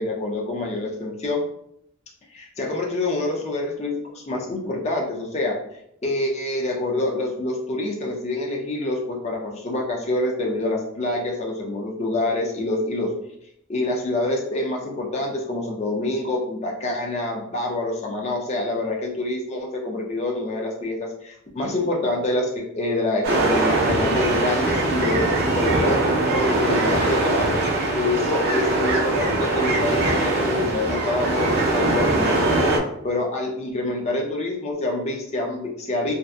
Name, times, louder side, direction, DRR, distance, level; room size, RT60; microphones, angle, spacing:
voice 1, 0.0-1.4 2.3-5.6 6.0-13.1 13.7-25.3 25.6-26.0 26.3-32.7 33.0-36.1, left 2 dB, 30° left, 0 dB, 0.4 m, -26 dB
sound 1, 23.2-32.8, right 2 dB, 45° right, 0.5 m, -22 dB
2.6 x 2.4 x 2.2 m, 0.73 s
head